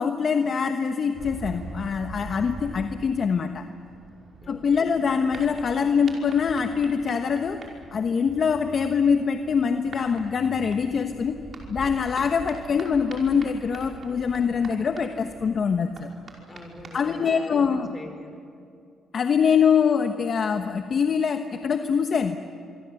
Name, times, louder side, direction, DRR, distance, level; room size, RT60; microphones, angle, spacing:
voice 1, 0.0-3.6 4.5-7.6 7.9-11.3 11.7-16.1 16.9-17.9 19.1-22.4, left 6 dB, 50° left, 7 dB, 1.2 m, -24 dB
sound 1, 1.1-17.3, right 3 dB, 45° right, 5.5 m, -43 dB
voice 2, 4.4-4.9 16.5-18.6, left 2 dB, 30° left, 5 dB, 5.0 m, -42 dB
26.0 x 24.0 x 8.0 m, 2.4 s
cardioid pair, 90°, 0 cm